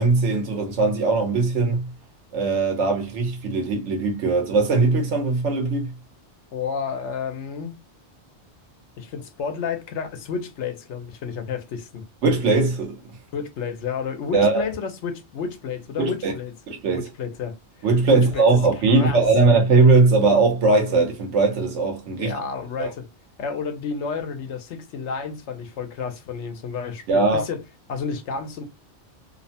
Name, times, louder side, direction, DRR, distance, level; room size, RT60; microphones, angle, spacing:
voice 1, 0.0-1.9 2.3-5.9 12.2-13.0 14.3-14.6 16.0-16.3 16.7-17.1 17.8-22.3 22.8-22.9 27.1-27.4, right 3 dB, 85° right, 1.1 m, -20 dB
voice 2, 6.5-7.8 9.0-12.0 13.3-16.5 16.9-18.5 18.9-19.2 22.2-23.1 23.4-27.6 27.9-28.6, left 6 dB, 80° left, 1.0 m, -31 dB
2.8 x 2.0 x 2.7 m
omnidirectional pair, 1.2 m